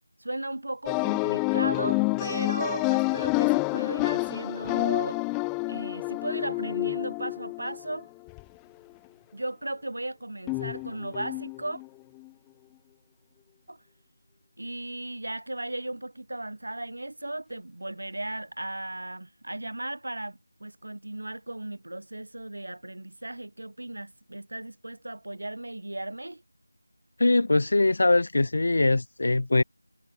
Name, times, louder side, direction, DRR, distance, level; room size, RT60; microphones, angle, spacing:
voice 1, 0.2-5.2 5.7-8.1 9.3-11.8 13.7-13.8 14.6-26.4, right 1 dB, 65° right, 6.4 m, -36 dB
sound 1, 0.9-8.4 10.5-11.9 12.3-12.4, left 35 dB, 5° left, 0.4 m, -28 dB
voice 2, 27.2-29.6, left 2 dB, 50° left, 2.0 m, -22 dB
figure-of-eight pair, 170°, 0 cm